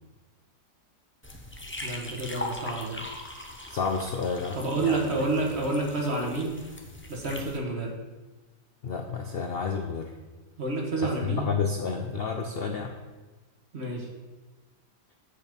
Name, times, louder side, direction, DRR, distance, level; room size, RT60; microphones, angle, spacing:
sound 1, 1.2-7.6, left 1 dB, 15° left, 0.4 m, -40 dB
voice 1, 1.8-3.1 4.5-6.7 7.1-8.0 10.6-11.5 13.7-14.1, right 2 dB, 40° right, 0 dB, 1.6 m, -29 dB
voice 2, 3.7-5.0 8.8-10.1 11.0-13.0, left 5 dB, 80° left, 4 dB, 0.5 m, -30 dB
7.4 x 6.8 x 5.2 m, 1.2 s
omnidirectional pair, 1.8 m